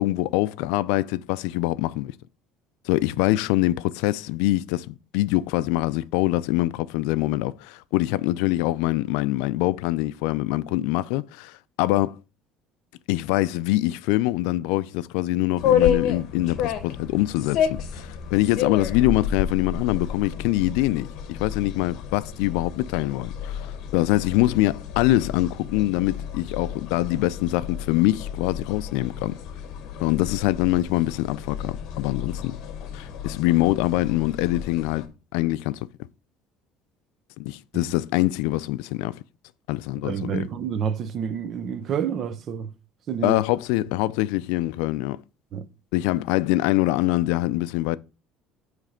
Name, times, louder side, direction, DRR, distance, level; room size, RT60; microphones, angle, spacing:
voice 1, 0.0-2.2 2.9-12.2 13.1-29.4 30.0-32.6 32.9-35.9 37.4-39.2 39.7-40.5 43.2-45.2 45.9-48.0, left 17 dB, 90° left, 0.3 m, -24 dB
sound 1, 15.6-35.1, left 8 dB, 50° left, 1.0 m, -30 dB
voice 2, 40.0-42.7 43.1-43.4 45.5-45.7, right 7 dB, 35° right, 0.5 m, -29 dB
9.0 x 3.3 x 5.0 m
cardioid pair, 175°, 0 cm